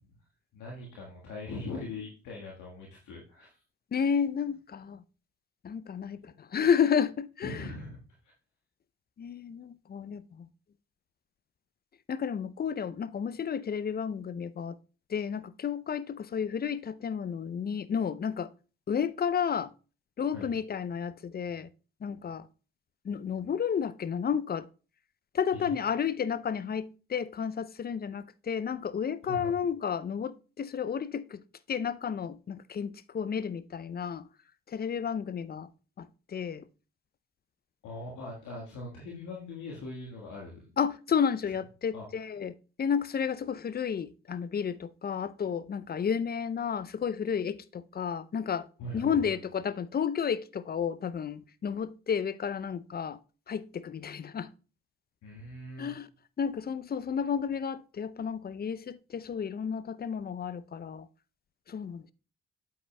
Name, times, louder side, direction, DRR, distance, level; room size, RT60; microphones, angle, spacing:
voice 1, 0.5-3.6 6.2-6.3 7.4-8.3 20.3-20.5 25.5-25.8 29.2-29.5 37.8-40.7 41.9-42.1 48.8-49.3 55.2-55.9, left 2 dB, 70° left, 1.7 m, -41 dB
voice 2, 3.9-5.0 5.6-7.6 9.2-10.5 12.1-14.8 15.1-18.5 18.9-19.7 20.2-21.7 22.0-22.5 23.0-24.7 25.3-31.4 31.7-34.2 34.7-35.7 36.0-36.6 40.8-48.7 48.9-53.2 53.5-54.5 55.8-56.1 56.4-61.1 61.7-62.1, left 7 dB, 30° left, 0.5 m, -32 dB
8.4 x 8.4 x 2.2 m
hypercardioid pair, 40°, 31 cm